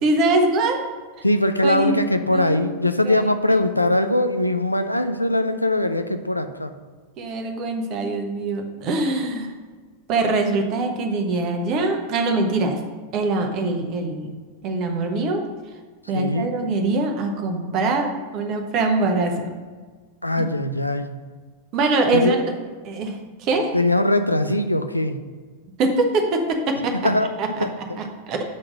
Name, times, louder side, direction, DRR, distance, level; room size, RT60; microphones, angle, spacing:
voice 1, 0.0-0.8 1.6-2.0 2.3-2.6 3.0-3.3 7.2-9.5 10.1-12.8 13.1-14.3 14.6-15.4 16.1-19.6 21.7-22.4 22.8-23.7 25.8-26.9 27.4-28.4, right 2 dB, 40° right, 3 dB, 1.1 m, -23 dB
voice 2, 1.2-6.7 16.1-16.5 20.2-21.2 22.1-22.3 23.7-25.2 27.0-27.3 27.6-27.7, left 1 dB, 85° left, 9 dB, 0.4 m, -21 dB
7.5 x 3.8 x 6.2 m, 1.4 s
figure-of-eight pair, 90°, 0 cm